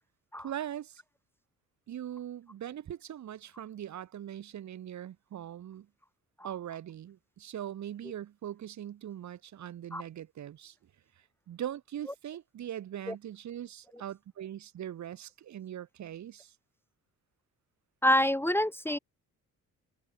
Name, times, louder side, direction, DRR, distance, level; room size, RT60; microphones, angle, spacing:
voice 1, 0.4-1.0 1.9-5.9 6.4-10.8 11.5-16.5, right 11 dB, 65° right, 3.8 m, -41 dB
voice 2, 18.0-19.0, left 1 dB, 5° left, 1.4 m, -27 dB
cardioid pair, 90°, 30 cm